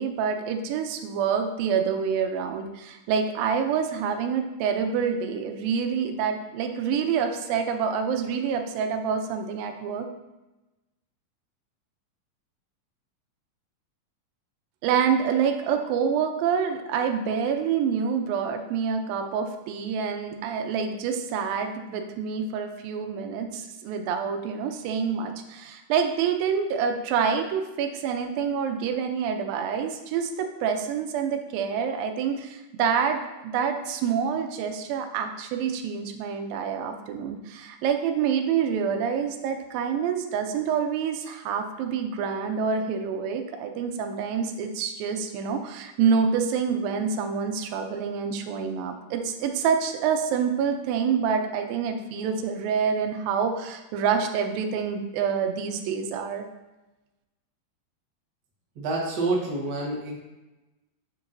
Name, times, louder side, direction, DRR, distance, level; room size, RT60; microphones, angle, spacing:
voice 1, 0.0-10.1 14.8-56.5, right 6 dB, 85° right, 5 dB, 2.4 m, -27 dB
voice 2, 58.7-60.2, right 2 dB, 70° right, -3 dB, 1.0 m, -27 dB
7.2 x 6.9 x 2.6 m, 1.0 s
omnidirectional pair, 4.1 m